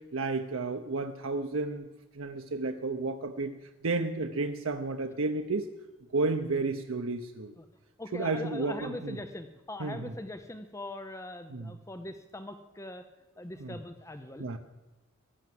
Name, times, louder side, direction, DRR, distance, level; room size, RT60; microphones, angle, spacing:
voice 1, 0.1-1.9 2.2-3.5 3.8-5.7 6.1-7.5 8.1-9.1 9.8-10.1 11.5-11.7 13.6-13.7 14.4-14.6, right 3 dB, 80° right, 6 dB, 0.8 m, -32 dB
voice 2, 8.0-13.1 13.4-14.5, left 1 dB, 15° left, 9 dB, 0.6 m, -41 dB
15.5 x 10.5 x 7.7 m, 1.1 s
head